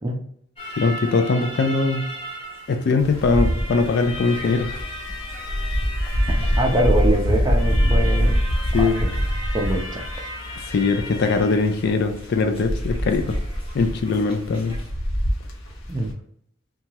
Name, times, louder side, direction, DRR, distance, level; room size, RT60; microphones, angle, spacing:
sound 1, 0.6-14.9, equal, 25° left, 0.7 m, -36 dB
voice 1, 0.8-2.1 2.7-4.8 6.4-6.6 8.7-9.1 10.6-13.4 13.7-14.7, left 4 dB, 55° left, 7 dB, 0.3 m, -21 dB
Wind, 3.0-16.1, equal, 80° left, 0.7 m, -24 dB
voice 2, 6.6-8.5 8.7-9.1 9.5-10.0 15.9-16.1, right 1 dB, 20° right, 2 dB, 0.4 m, -24 dB
2.8 x 2.3 x 2.8 m, 0.71 s
head